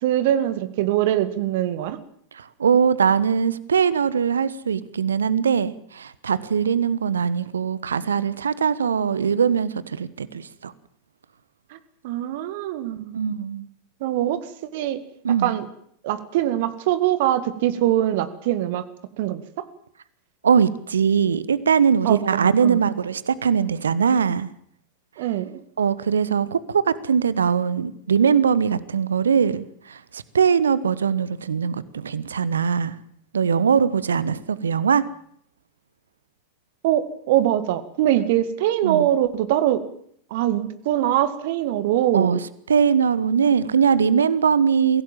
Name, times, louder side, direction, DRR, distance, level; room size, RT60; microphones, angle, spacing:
voice 1, 0.0-2.0 12.0-13.2 14.0-14.4 14.7-15.0 15.4-15.7 16.0-18.8 19.2-19.6 22.0-22.8 25.2-25.6 36.8-39.8 40.3-42.4, right 12 dB, 50° right, 12 dB, 1.9 m, -23 dB
voice 2, 2.3-10.7 13.1-13.6 15.2-15.5 20.4-24.5 25.8-32.9 33.3-35.0 38.8-39.1 42.1-42.4 42.7-45.0, right 7 dB, 70° right, 18 dB, 1.1 m, -21 dB
23.0 x 16.5 x 7.5 m, 0.66 s
figure-of-eight pair, 90°, 0 cm